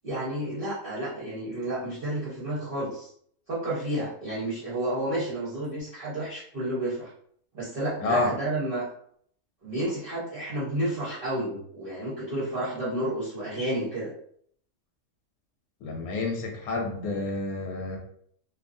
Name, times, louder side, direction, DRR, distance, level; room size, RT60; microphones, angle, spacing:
voice 1, 0.0-3.1 3.5-7.1 7.5-8.9 9.6-14.1, right 1 dB, 45° right, -9 dB, 1.0 m, -31 dB
voice 2, 8.0-8.3 15.8-18.0, left 2 dB, 90° left, 1 dB, 1.1 m, -29 dB
2.8 x 2.6 x 2.5 m, 0.63 s
omnidirectional pair, 1.5 m